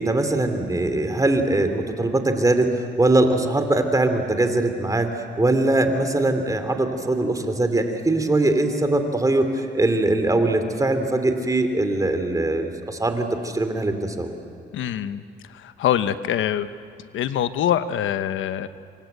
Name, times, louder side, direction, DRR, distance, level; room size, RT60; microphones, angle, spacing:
voice 1, 0.0-5.1 5.4-14.3, right 2 dB, 15° right, 7 dB, 3.1 m, -21 dB
voice 2, 14.7-16.7 17.0-18.7, left 10 dB, 80° left, 12 dB, 1.0 m, -24 dB
27.0 x 24.0 x 8.1 m, 2.3 s
cardioid pair, 90°, 20 cm